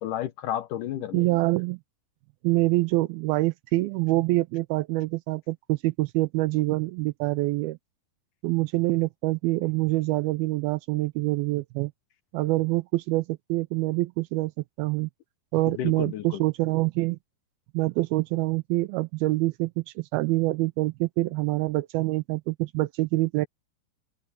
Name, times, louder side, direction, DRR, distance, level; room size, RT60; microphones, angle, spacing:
voice 1, 0.0-1.4 15.7-16.4, left 11 dB, 70° left, 2.1 m, -32 dB
voice 2, 1.1-1.8 2.4-7.8 8.4-11.9 12.3-14.5 14.8-15.1 15.5-17.2 17.7-23.5, right 20 dB, 85° right, 2.4 m, -25 dB
open air
omnidirectional pair, 4.4 m